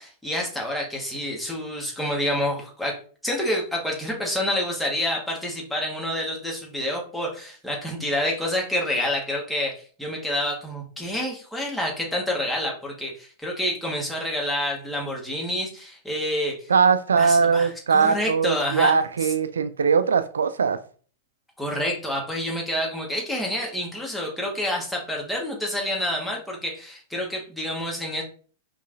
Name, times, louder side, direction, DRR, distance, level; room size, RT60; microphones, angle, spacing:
voice 1, 0.0-16.7 17.2-18.9 19.2-19.3 21.6-28.2, left 1 dB, 5° left, 1.6 m, -28 dB
voice 2, 16.7-20.8, right 5 dB, 80° right, 0.5 m, -20 dB
5.4 x 3.3 x 2.7 m
figure-of-eight pair, 100°, 0 cm